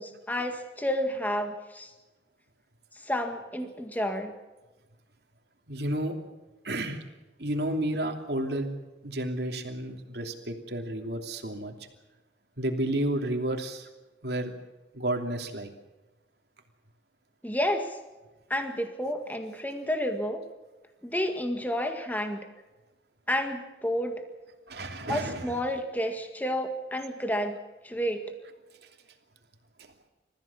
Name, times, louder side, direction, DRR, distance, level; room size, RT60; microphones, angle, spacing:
voice 1, 0.0-1.9 3.0-4.3 17.4-18.0 18.5-20.4 21.0-22.4 23.3-24.1 25.1-27.6 27.8-28.2, equal, 10° left, 5 dB, 1.9 m, -30 dB
voice 2, 5.7-6.1 6.6-7.0 7.4-8.7 9.0-11.7 12.6-13.9 14.2-14.5 14.9-15.7 24.7-25.6 28.8-28.9, right 1 dB, 70° right, 4 dB, 2.9 m, -31 dB
29.5 x 15.0 x 7.2 m, 1.1 s
head